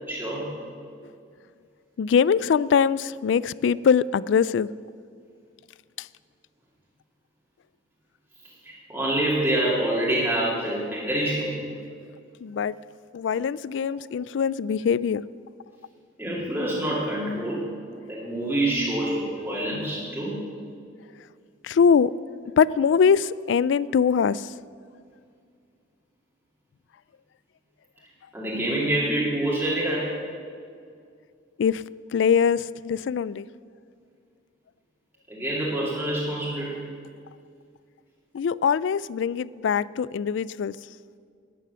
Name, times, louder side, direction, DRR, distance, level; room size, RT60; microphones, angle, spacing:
voice 1, 0.1-0.5 8.6-11.6 16.2-17.7 18.1-20.4 28.3-30.2 35.3-36.8, right 1 dB, 10° right, -7 dB, 2.6 m, -26 dB
voice 2, 2.0-4.7 6.0-6.1 12.4-12.8 13.1-15.2 21.6-22.1 22.6-24.5 31.6-31.8 32.1-33.5 38.3-40.8, left 6 dB, 70° left, 20 dB, 0.3 m, -22 dB
12.5 x 10.0 x 6.8 m, 2.3 s
head